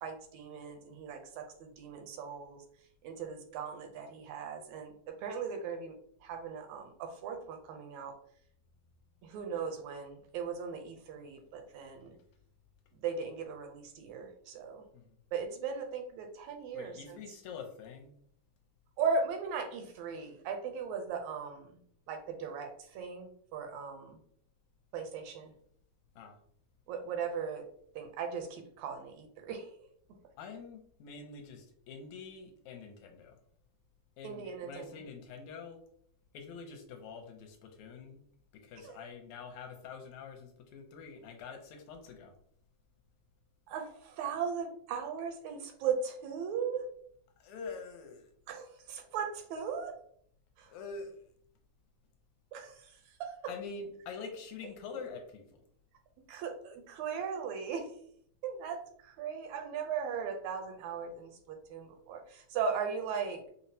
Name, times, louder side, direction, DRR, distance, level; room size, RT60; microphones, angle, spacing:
voice 1, 0.0-2.6 3.0-8.2 9.2-12.2 13.0-14.8 15.3-17.2 19.0-21.8 22.1-24.2 24.9-25.5 26.9-27.7 28.0-29.8 34.2-35.0 38.8-39.0 43.7-46.9 48.5-50.0 50.6-50.7 52.5-53.5 55.0-55.1 56.3-57.9 58.4-63.4, right 6 dB, 80° right, 5 dB, 1.8 m, -38 dB
voice 2, 16.7-18.1 26.2-26.4 30.4-33.4 34.2-35.8 36.3-38.2 38.5-42.3 47.4-48.3 50.7-51.1 53.5-55.4, left 5 dB, 80° left, 3 dB, 1.9 m, -46 dB
5.4 x 2.0 x 2.7 m, 0.64 s
omnidirectional pair, 3.3 m